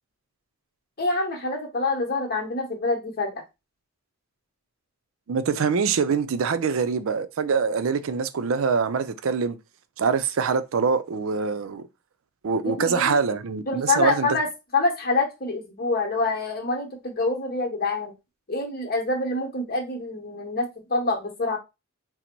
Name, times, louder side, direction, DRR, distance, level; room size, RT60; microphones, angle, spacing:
voice 1, 1.0-3.3 12.6-13.2 13.7-14.5 14.7-18.1 18.5-21.6, left 3 dB, 45° left, 1.0 m, -26 dB
voice 2, 5.3-9.6 10.0-11.8 12.4-14.3, right 5 dB, 65° right, 0.4 m, -24 dB
3.9 x 2.0 x 4.4 m
head